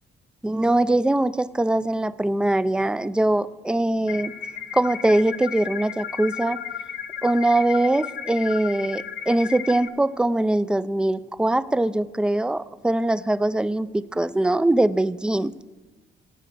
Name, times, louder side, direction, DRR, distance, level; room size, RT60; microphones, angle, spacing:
voice 1, 0.4-4.3 4.7-6.6 7.2-15.5, right 1 dB, 5° right, 15 dB, 0.4 m, -22 dB
sound 1, 4.1-9.9, left 8 dB, 65° left, 0.8 m, -34 dB
17.0 x 8.7 x 4.5 m, 1.2 s
cardioid pair, 90°, 20 cm